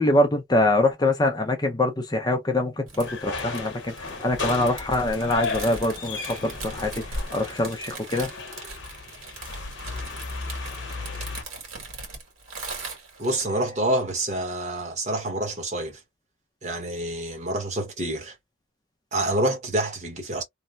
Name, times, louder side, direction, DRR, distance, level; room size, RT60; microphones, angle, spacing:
voice 1, 0.0-8.3, left 1 dB, 20° left, 0.5 m, -24 dB
sound 1, 2.9-13.5, right 2 dB, 80° right, 1.8 m, -39 dB
sound 2, 3.0-11.4, left 3 dB, 60° left, 0.9 m, -35 dB
voice 2, 13.2-16.0 16.6-18.3 19.1-20.4, right 1 dB, 35° right, 1.0 m, -27 dB
3.1 x 2.1 x 2.6 m
head